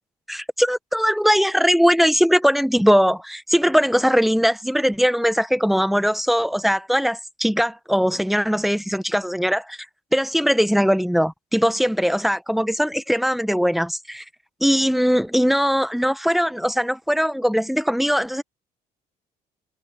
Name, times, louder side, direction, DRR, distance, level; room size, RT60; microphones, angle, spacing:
voice 1, 0.3-9.8 10.1-14.2 14.6-18.4, equal, ahead, 0.8 m, -20 dB
cardioid pair, 110°, 17 cm